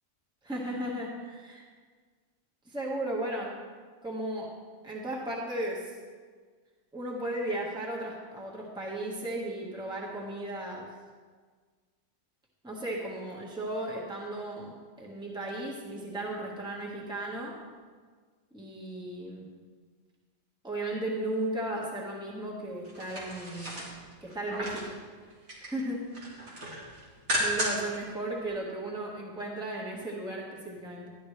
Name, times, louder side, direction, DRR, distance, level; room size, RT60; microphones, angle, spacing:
voice 1, 0.4-1.7 2.6-3.5 4.0-6.0 6.9-10.9 12.6-17.6 18.5-19.5 20.6-23.8 24.2-25.0 25.6-26.1 26.6-26.7 27.4-31.2, right 1 dB, 5° right, -3 dB, 1.5 m, -35 dB
sound 1, 22.8-24.9 25.3-25.8 26.1-28.0 28.3-28.4, equal, 85° right, 3.1 m, -34 dB
12.5 x 11.5 x 3.3 m, 1.5 s
omnidirectional pair, 1.4 m